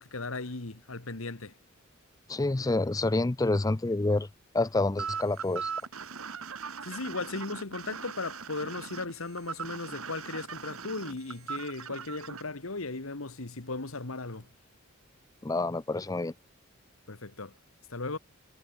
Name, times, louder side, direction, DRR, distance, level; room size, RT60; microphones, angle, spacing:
voice 1, 0.0-1.5 6.8-14.5 17.1-17.6 17.9-18.2, left 3 dB, 75° left, 1.7 m, -37 dB
voice 2, 2.3-4.3 4.5-5.7 15.4-16.3, left 2 dB, 15° left, 0.4 m, -28 dB
sound 1, 5.0-12.4, right 6 dB, 80° right, 1.8 m, -39 dB
head